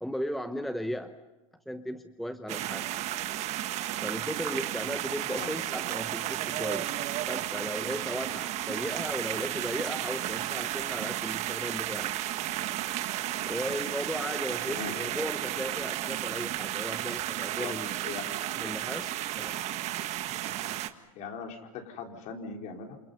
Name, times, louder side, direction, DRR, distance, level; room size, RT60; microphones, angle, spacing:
voice 1, 0.0-1.2 1.7-2.9 4.0-12.1 13.4-17.9 18.5-19.6, equal, ahead, 9 dB, 0.9 m, -36 dB
sound 1, 2.5-20.9, right 13 dB, 40° right, 1.5 m, -33 dB
voice 2, 21.2-23.0, left 5 dB, 45° left, 3 dB, 4.3 m, -40 dB
28.0 x 28.0 x 5.6 m, 1.1 s
hypercardioid pair, 115°, 18 cm